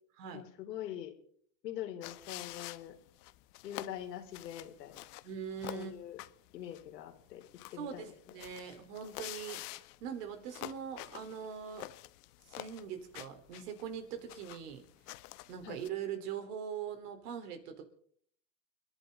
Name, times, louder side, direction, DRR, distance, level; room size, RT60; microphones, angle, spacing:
voice 1, 0.3-1.1 1.6-3.0 3.6-5.1 5.7-6.2 6.5-7.4 7.7-8.1 15.6-15.8, left 11 dB, 85° left, 3 dB, 3.8 m, -43 dB
sound 1, 2.0-15.9, left 18 dB, 70° left, 1.1 m, -48 dB
voice 2, 5.2-5.9 7.8-9.6 10.0-11.9 12.5-14.8 15.5-17.9, right 8 dB, 70° right, 6 dB, 4.0 m, -42 dB
29.5 x 11.5 x 3.9 m, 0.63 s
hypercardioid pair, 110°, 48 cm